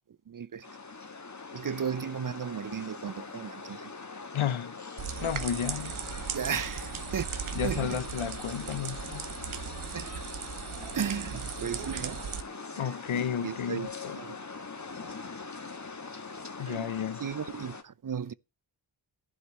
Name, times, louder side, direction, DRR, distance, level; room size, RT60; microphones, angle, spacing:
voice 1, 0.3-0.7 1.5-3.8 6.3-7.3 7.6-8.0 9.9-10.1 10.9-12.3 12.8-12.9 13.4-14.4 16.7-16.9 17.2-18.3, right 7 dB, 40° right, 0.6 m, -35 dB
sound 1, 0.6-17.8, left 4 dB, 35° left, 1.6 m, -42 dB
voice 2, 4.3-4.8 5.2-6.0 7.5-9.2 12.8-14.2 16.6-17.2, left 8 dB, 75° left, 1.0 m, -32 dB
sound 2, 5.0-12.4, right 8 dB, 70° right, 1.2 m, -38 dB
11.5 x 4.9 x 8.0 m
cardioid pair, 45°, 49 cm